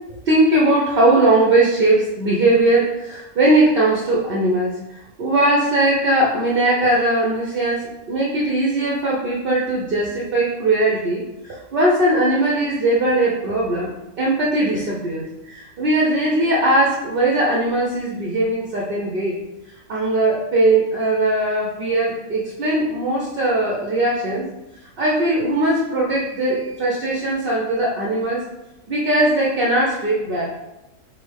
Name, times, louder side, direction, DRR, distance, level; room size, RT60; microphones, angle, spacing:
voice 1, 0.3-13.9 14.2-19.4 19.9-24.4 25.0-28.4 28.9-30.5, right 1 dB, 65° right, -4 dB, 0.6 m, -19 dB
4.9 x 2.0 x 3.3 m, 0.96 s
omnidirectional pair, 1.6 m